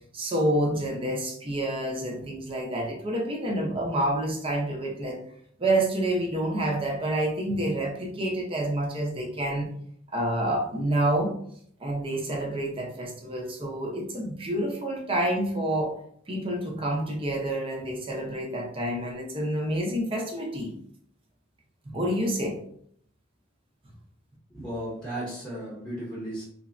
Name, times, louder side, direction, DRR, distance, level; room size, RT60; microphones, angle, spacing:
voice 1, 0.1-5.2 5.6-9.7 10.1-11.3 11.8-15.9 16.3-20.7 21.9-22.5, right 1 dB, 30° right, 0 dB, 0.6 m, -28 dB
voice 2, 24.5-26.4, right 1 dB, 5° left, -7 dB, 0.8 m, -35 dB
3.3 x 2.0 x 2.5 m, 0.64 s
head